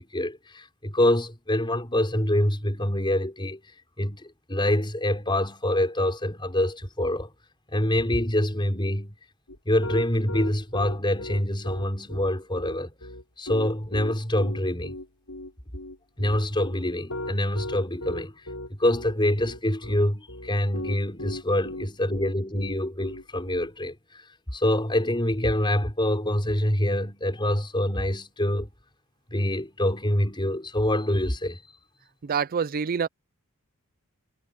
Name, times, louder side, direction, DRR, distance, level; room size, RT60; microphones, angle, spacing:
voice 1, 0.0-3.6 4.0-7.3 7.7-9.2 9.6-12.9 13.4-14.9 16.2-18.4 18.8-24.2 24.5-28.7 29.3-31.6, left 1 dB, 20° left, 5.0 m, -25 dB
Piano, 9.5-23.7, left 1 dB, 70° left, 6.0 m, -37 dB
voice 2, 32.3-33.1, right 6 dB, 40° right, 0.4 m, -26 dB
head